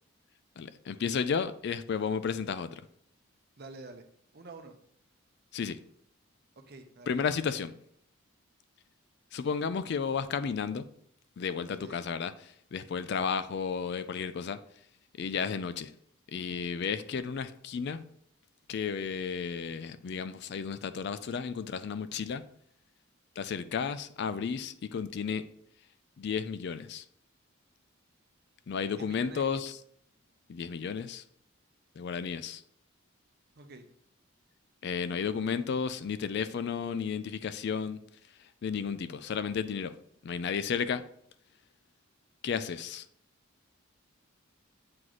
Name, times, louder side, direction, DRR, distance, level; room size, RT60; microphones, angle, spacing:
voice 1, 0.6-2.8 5.5-5.8 7.1-7.7 9.3-10.9 11.4-14.6 15.2-15.9 16.3-18.0 18.7-22.4 23.4-25.5 26.2-27.0 28.7-29.8 30.5-31.2 32.0-32.6 34.8-38.0 38.6-39.9 40.2-41.0 42.4-43.0, left 6 dB, 55° left, 0.3 m, -33 dB
voice 2, 3.6-4.0 4.3-4.7 6.7-7.3 11.8-12.0 29.0-29.6 33.6-33.8, right 3 dB, 50° right, 0.7 m, -47 dB
7.7 x 3.1 x 3.9 m
head